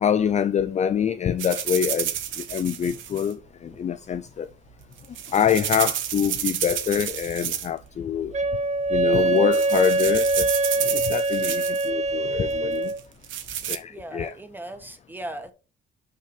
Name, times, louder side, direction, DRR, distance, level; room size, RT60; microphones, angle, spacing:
voice 1, 0.0-2.1 2.5-4.5 5.3-8.3 8.9-10.6 10.9-12.9 13.7-14.3, left 8 dB, 35° left, 0.4 m, -25 dB
sound 1, 1.4-3.3 4.8-7.9 8.1-8.6 9.1-9.2 9.5-11.9 12.9-13.8, right 10 dB, 75° right, 0.9 m, -30 dB
Wind instrument woodwind instrument, 8.3-13.0, right 2 dB, 35° right, 0.9 m, -23 dB
voice 2, 13.9-15.5, right 1 dB, 10° right, 1.3 m, -38 dB
5.6 x 4.9 x 5.0 m
cardioid pair, 90°, 20 cm